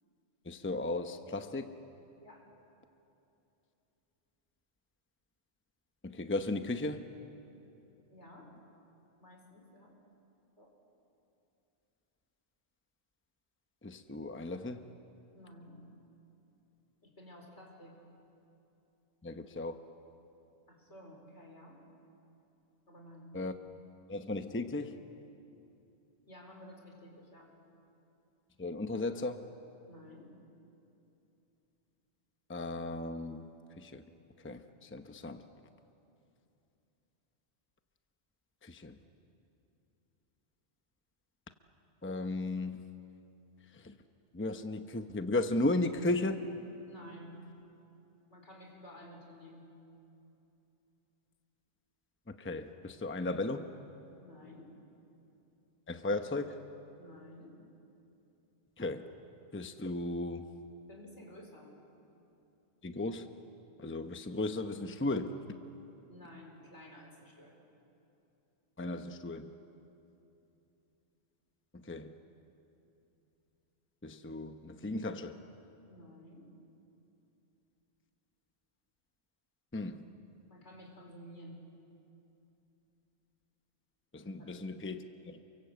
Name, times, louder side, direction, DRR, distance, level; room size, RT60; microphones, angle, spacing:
voice 1, 0.4-1.7 6.0-7.1 13.8-14.8 19.2-19.8 23.3-23.5 24.1-25.0 28.6-29.4 32.5-33.5 33.8-34.0 34.4-35.4 38.6-39.0 42.0-42.8 43.7-43.9 44.3-46.4 52.3-53.7 55.9-56.6 58.8-59.0 59.5-60.5 62.8-63.3 63.8-65.4 68.8-69.5 71.7-72.1 74.0-75.4 79.7-80.0 84.1-85.4, left 2 dB, 10° left, 8 dB, 0.8 m, -35 dB
voice 2, 8.1-8.5 9.2-9.9 10.6-10.7 15.3-15.8 17.0-18.0 20.7-21.8 22.9-23.3 26.3-27.5 29.9-30.3 46.9-47.3 48.3-49.6 54.2-54.7 57.0-57.6 60.9-61.7 66.1-67.5 75.9-76.5 80.5-81.6 84.4-84.5, left 1 dB, 80° left, 1 dB, 5.0 m, -53 dB
29.0 x 23.5 x 8.1 m, 2.8 s
omnidirectional pair, 1.2 m